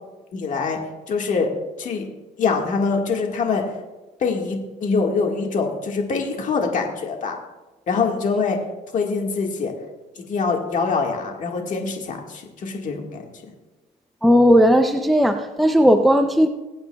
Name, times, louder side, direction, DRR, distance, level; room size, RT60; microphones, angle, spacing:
voice 1, 0.3-1.5 1.8-2.1 2.4-3.7 4.2-7.4 7.9-8.6 8.9-9.7 10.2-13.2, left 4 dB, 50° left, 1.8 m, -24 dB
voice 2, 14.2-16.5, equal, ahead, 0.5 m, -16 dB
21.0 x 8.7 x 2.3 m
cardioid pair, 110°, 17 cm